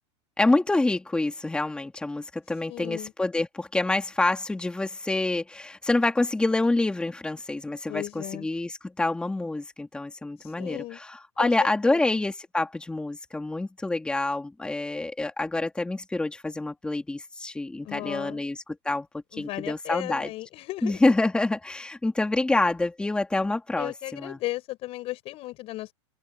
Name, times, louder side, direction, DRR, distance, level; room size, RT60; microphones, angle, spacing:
voice 1, 0.4-19.1 19.3-20.3 20.8-24.4, left 2 dB, 5° left, 2.9 m, -27 dB
voice 2, 2.7-3.1 7.9-8.5 10.4-11.0 11.4-12.2 17.8-18.4 19.3-21.1 23.8-25.9, left 17 dB, 40° left, 7.3 m, -36 dB
supercardioid pair, 135°, 15 cm